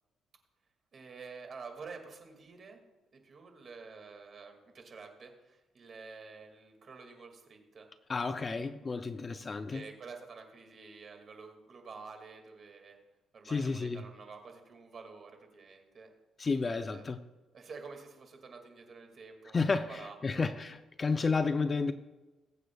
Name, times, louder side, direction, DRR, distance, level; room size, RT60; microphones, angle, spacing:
voice 1, 0.9-2.8 3.1-7.9 9.7-13.0 13.3-16.1 16.9-17.0 17.5-20.5 21.1-21.2, right 4 dB, 45° right, 2.1 m, -49 dB
voice 2, 8.1-9.8 13.4-14.0 16.4-17.2 19.5-21.9, left 4 dB, 30° left, 0.5 m, -31 dB
21.0 x 8.1 x 2.3 m
cardioid pair, 110°, 0 cm